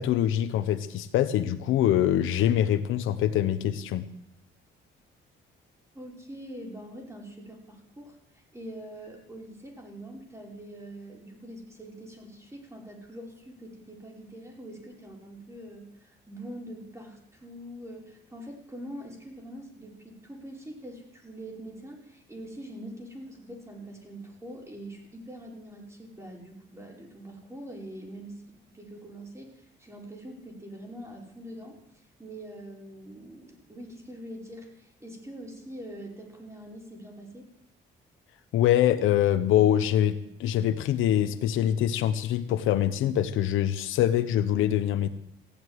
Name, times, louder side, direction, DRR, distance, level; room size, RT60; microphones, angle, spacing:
voice 1, 0.0-4.0 38.5-45.1, left 11 dB, 90° left, 10 dB, 1.0 m, -24 dB
voice 2, 5.9-8.2 8.5-28.4 28.7-31.8 32.2-37.5, right 1 dB, 15° right, -1 dB, 5.1 m, -44 dB
16.0 x 8.0 x 9.7 m, 0.74 s
cardioid pair, 90°, 20 cm